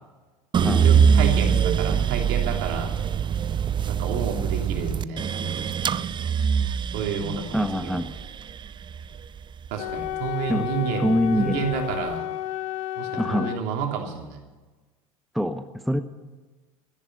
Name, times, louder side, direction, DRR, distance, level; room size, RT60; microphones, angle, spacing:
sound 1, 0.5-10.7 11.2-12.0, right 7 dB, 25° right, 0.5 m, -24 dB
voice 1, 0.6-3.0 3.9-5.7 6.9-8.1 9.7-12.3 13.0-14.4, right 6 dB, 60° right, 2 dB, 3.2 m, -30 dB
voice 2, 7.5-8.1 10.5-10.7 11.0-11.7 13.2-13.5 15.3-16.0, equal, ahead, 8 dB, 0.9 m, -24 dB
Wind instrument woodwind instrument, 9.7-13.6, left 13 dB, 65° left, 0.7 m, -31 dB
13.5 x 10.5 x 9.4 m, 1.2 s
hypercardioid pair, 80°, 18 cm